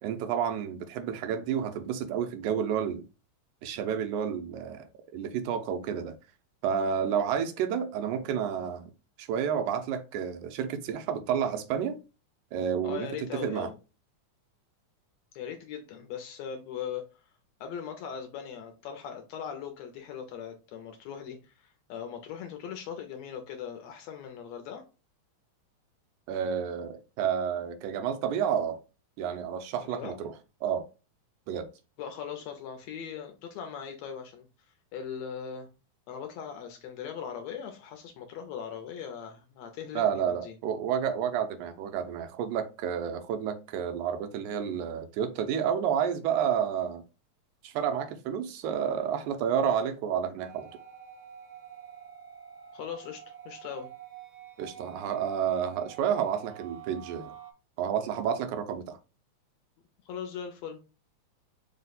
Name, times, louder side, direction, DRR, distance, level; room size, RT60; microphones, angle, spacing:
voice 1, 0.0-3.0 3.6-6.1 6.6-8.9 9.2-12.0 12.5-13.1 13.3-13.7 26.3-28.8 29.2-30.3 30.6-30.8 31.5-31.7 40.0-47.0 47.6-50.7 54.6-57.3 57.8-59.0, right 8 dB, 90° right, 2.1 m, -30 dB
voice 2, 12.8-13.7 15.3-17.1 17.6-24.8 29.8-30.1 32.0-34.5 34.9-35.7 36.1-40.5 52.7-53.9 60.0-60.8, left 7 dB, 75° left, 1.6 m, -39 dB
sound 1, 50.4-57.5, right 9 dB, 75° right, 1.6 m, -47 dB
4.8 x 2.1 x 3.9 m
omnidirectional pair, 3.5 m